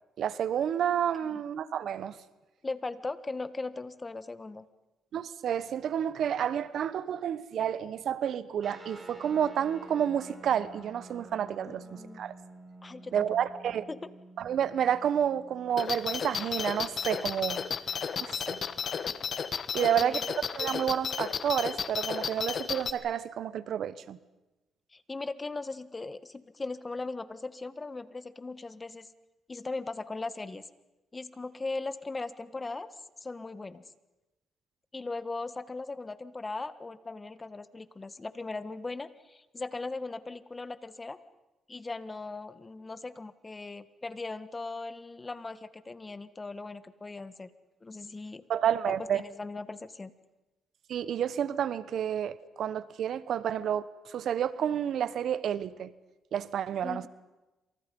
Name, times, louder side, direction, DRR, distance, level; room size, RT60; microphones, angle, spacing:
voice 1, 0.2-2.2 5.1-12.3 13.1-13.9 14.4-17.6 18.2-18.6 19.7-20.2 20.6-24.2 48.5-49.2 50.9-55.9 56.3-57.1, right 9 dB, 65° right, 1.1 m, -30 dB
voice 2, 2.6-4.7 11.7-12.2 12.8-13.2 13.9-14.0 19.8-20.3 24.9-29.1 29.5-30.7 31.1-32.9 33.2-33.8 34.9-41.2 41.7-47.5 47.8-48.4 48.9-50.1 56.8-57.1, left 3 dB, 25° left, 1.5 m, -39 dB
sound 1, 8.6-19.5, right 2 dB, 15° right, 7.5 m, -51 dB
sound 2, 15.8-22.9, left 6 dB, 50° left, 1.6 m, -33 dB
28.5 x 27.0 x 5.4 m
cardioid pair, 90°, 0 cm